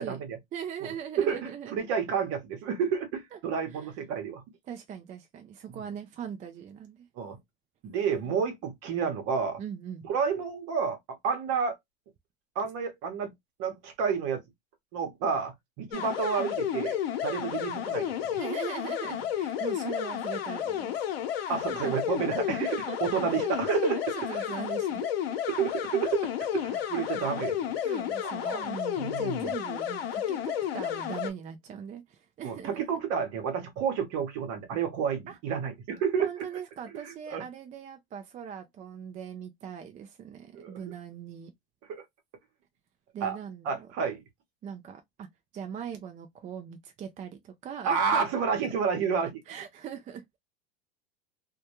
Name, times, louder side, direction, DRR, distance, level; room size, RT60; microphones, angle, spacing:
voice 1, 0.0-0.4 1.2-4.4 5.7-5.8 7.2-7.4 7.8-9.6 10.1-11.0 11.2-11.7 12.5-13.3 13.6-14.4 14.9-17.0 17.2-18.4 21.5-23.9 25.5-27.7 28.2-28.6 29.0-29.5 32.4-36.3 37.3-37.4 40.5-40.7 41.9-42.0 43.2-43.4 43.6-44.2 47.8-49.3, right 6 dB, 55° right, 1.0 m, -30 dB
voice 2, 0.5-1.9 3.3-3.4 3.7-3.9 4.6-7.1 8.2-8.4 9.6-10.1 18.4-21.1 21.5-21.9 22.6-23.0 23.7-25.0 25.9-26.0 26.7-26.8 27.1-27.3 27.8-33.0 35.3-35.4 36.2-41.5 43.1-43.9 44.6-45.3 45.5-48.3 48.6-48.7 49.2-50.2, right 8 dB, 25° right, 0.4 m, -40 dB
sound 1, 15.9-31.3, left 10 dB, 90° left, 0.6 m, -32 dB
2.2 x 2.2 x 2.8 m
supercardioid pair, 110°, 29 cm